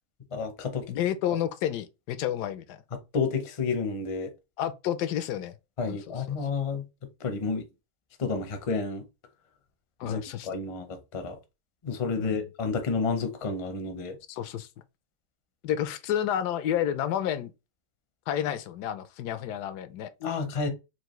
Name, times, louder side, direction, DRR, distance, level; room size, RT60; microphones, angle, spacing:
voice 1, 0.3-0.8 3.1-4.3 5.8-6.8 7.2-7.6 8.2-9.0 10.0-11.4 11.8-14.2 20.2-20.7, left 4 dB, 40° left, 0.5 m, -30 dB
voice 2, 0.9-2.8 4.6-5.5 5.8-6.4 10.0-10.5 12.2-12.4 14.3-14.7 15.6-17.5 18.3-20.1, left 10 dB, 85° left, 1.1 m, -30 dB
4.7 x 2.6 x 3.0 m
omnidirectional pair, 1.7 m